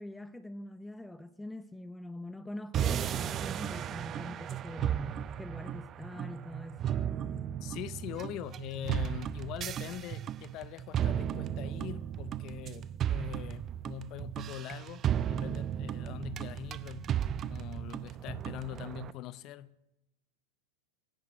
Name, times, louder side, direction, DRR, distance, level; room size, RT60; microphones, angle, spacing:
voice 1, 0.0-7.1, left 1 dB, 5° left, 0.6 m, -44 dB
sound 1, 2.7-19.1, right 10 dB, 35° right, 0.6 m, -35 dB
voice 2, 7.6-17.1 17.5-19.8, left 14 dB, 45° left, 0.7 m, -43 dB
26.0 x 11.0 x 4.4 m
hypercardioid pair, 100°, 0 cm